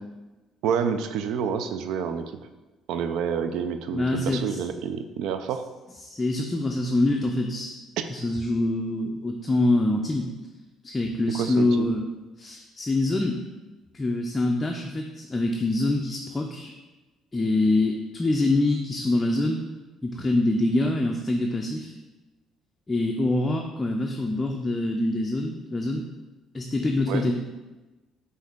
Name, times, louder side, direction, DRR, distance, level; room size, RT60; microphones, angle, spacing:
voice 1, 0.6-2.4 2.9-5.7 8.0-8.1 11.3-11.9 27.1-27.3, right 7 dB, 80° right, 9 dB, 0.3 m, -28 dB
voice 2, 3.9-4.6 6.0-7.8 8.1-10.3 10.8-12.0 12.4-13.4 13.9-16.7 17.3-19.6 20.0-21.9 22.9-26.0 26.5-27.4, left 2 dB, 20° left, 1 dB, 0.4 m, -25 dB
5.5 x 2.6 x 3.6 m, 1.1 s
cardioid pair, 95°, 0 cm